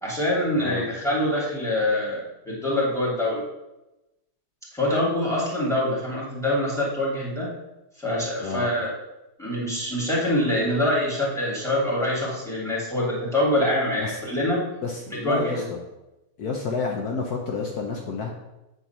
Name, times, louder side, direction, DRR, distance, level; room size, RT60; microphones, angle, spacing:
voice 1, 0.0-3.4 4.7-7.5 8.0-8.9 9.4-14.6 15.2-15.7, left 1 dB, ahead, -6 dB, 2.8 m, -25 dB
voice 2, 0.6-0.9 8.4-8.7 14.0-14.2 14.8-15.8 16.4-18.3, left 4 dB, 65° left, 1 dB, 1.4 m, -30 dB
8.3 x 4.7 x 5.9 m, 0.96 s
omnidirectional pair, 1.9 m